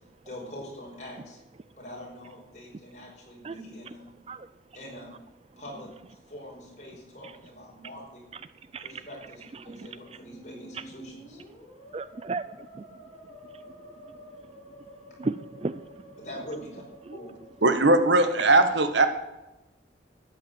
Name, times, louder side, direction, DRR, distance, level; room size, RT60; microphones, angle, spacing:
voice 1, 0.2-1.4 1.8-4.1 4.7-5.2 5.6-8.3 8.8-11.4 16.2-16.8 17.1-17.3, equal, 40° left, -2 dB, 4.9 m, -43 dB
voice 2, 8.7-9.1 9.5-10.2 10.7-10.8 11.9-14.8 15.1-16.2 17.0-17.2, right 3 dB, 35° right, 15 dB, 0.4 m, -37 dB
Musical instrument, 10.0-18.0, equal, 15° left, 6.3 m, -50 dB
voice 3, 17.6-19.1, right 2 dB, 90° right, 9 dB, 1.4 m, -19 dB
13.0 x 8.7 x 7.7 m, 0.99 s
head